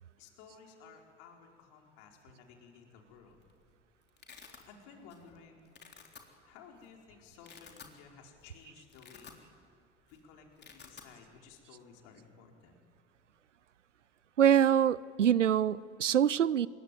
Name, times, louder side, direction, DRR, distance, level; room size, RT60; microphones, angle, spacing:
voice 1, 0.2-3.4 4.7-5.7 6.4-9.3 10.1-12.8, left 6 dB, 55° left, 2 dB, 4.7 m, -56 dB
Domestic sounds home sounds, 3.2-3.5 3.8-4.6 5.1-5.4 5.6-6.2 6.8-6.9 7.3-8.0 8.4-8.5 8.8-9.7 10.0-10.2 10.4-11.1, left 6 dB, 30° left, 3.7 m, -53 dB
voice 2, 14.4-16.7, right 9 dB, 85° right, 23 dB, 0.6 m, -25 dB
26.5 x 22.5 x 9.2 m, 2.2 s
figure-of-eight pair, 70°, 36 cm